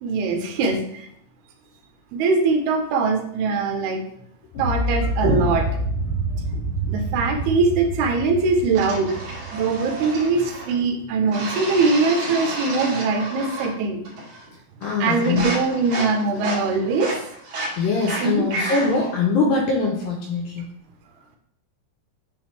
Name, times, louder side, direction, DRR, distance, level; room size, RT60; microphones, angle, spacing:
voice 1, 0.0-1.1 2.1-4.0 4.6-5.7 6.5-9.1 9.5-14.0 15.0-17.2 18.2-18.5, right 3 dB, 80° right, 4 dB, 2.7 m, -22 dB
sound 1, 4.5-10.6, right 1 dB, 50° left, 1.8 m, -27 dB
sound 2, 8.7-10.8 11.3-13.8 14.0-14.5 14.8-19.1, right 2 dB, 50° right, 2.8 m, -31 dB
voice 2, 14.8-15.5 17.8-20.7, left 4 dB, 75° left, 1 dB, 2.2 m, -22 dB
9.1 x 3.6 x 3.2 m, 0.67 s
omnidirectional pair, 4.7 m